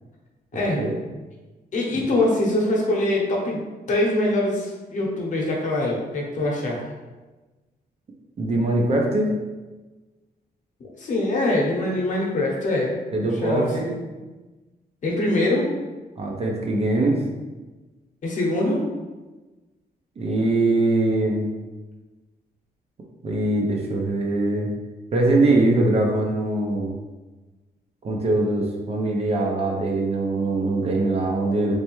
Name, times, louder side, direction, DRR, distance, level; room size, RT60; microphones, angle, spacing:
voice 1, 1.7-6.9 10.8-13.9 15.0-15.7 18.2-18.8, left 1 dB, 50° left, -3 dB, 0.8 m, -24 dB
voice 2, 8.4-9.3 13.1-14.0 16.2-17.2 20.2-21.5 23.2-24.7 25.1-26.9 28.0-31.7, right 2 dB, 40° right, 0 dB, 0.5 m, -22 dB
3.3 x 3.1 x 3.0 m, 1.2 s
wide cardioid pair, 175°, 17 cm